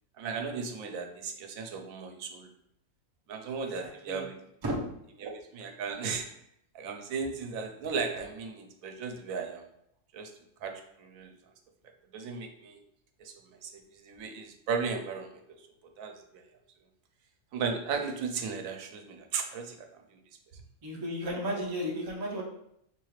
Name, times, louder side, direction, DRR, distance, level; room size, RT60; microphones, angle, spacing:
voice 1, 0.2-2.5 3.3-4.3 5.2-6.3 6.7-9.6 10.1-10.3 10.6-11.3 12.1-12.8 13.2-13.3 13.6-13.7 14.0-15.6 16.0-16.1 17.5-19.9, right 5 dB, 80° right, 5 dB, 1.0 m, -35 dB
voice 2, 3.6-4.3 4.6-4.8 20.8-22.4, equal, 30° right, -2 dB, 0.4 m, -34 dB
4.2 x 2.4 x 3.1 m, 0.74 s
omnidirectional pair, 1.4 m